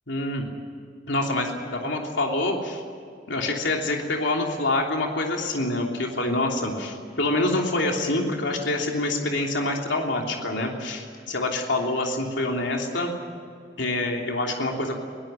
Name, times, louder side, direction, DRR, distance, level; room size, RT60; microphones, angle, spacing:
voice 1, 0.1-0.4 1.1-2.8 3.3-13.1 13.8-15.0, left 2 dB, 80° left, 1 dB, 3.1 m, -26 dB
22.5 x 17.5 x 9.1 m, 2.4 s
head